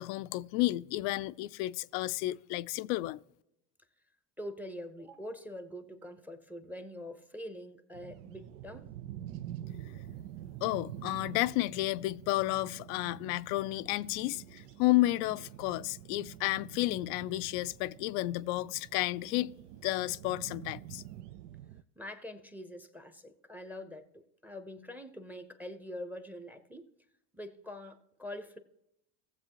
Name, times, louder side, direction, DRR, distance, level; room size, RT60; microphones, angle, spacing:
voice 1, 0.0-3.2 10.6-19.5 19.8-21.0, left 18 dB, 70° left, 0.5 m, -32 dB
voice 2, 4.4-8.9 22.0-24.1 24.4-26.9 27.3-28.6, left 1 dB, 5° right, 0.7 m, -44 dB
sound 1, 7.9-21.8, right 12 dB, 80° right, 0.6 m, -47 dB
16.5 x 7.4 x 2.9 m
supercardioid pair, 95°, 48 cm